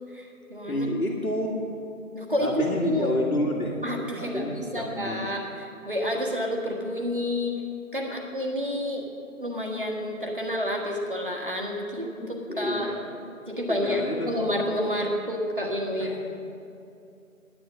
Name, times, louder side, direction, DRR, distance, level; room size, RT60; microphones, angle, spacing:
voice 1, 0.1-0.9 2.1-3.1 3.8-7.5 7.9-9.1 9.4-12.1 12.6-12.9 13.5-16.3, left 1 dB, 35° right, 0 dB, 1.4 m, -29 dB
voice 2, 0.7-1.5 2.4-3.8 4.2-5.3 12.2-13.0 13.7-14.3 16.0-16.3, left 1 dB, 85° left, -5 dB, 2.0 m, -29 dB
10.0 x 9.8 x 6.4 m, 2.6 s
figure-of-eight pair, 175°, 43 cm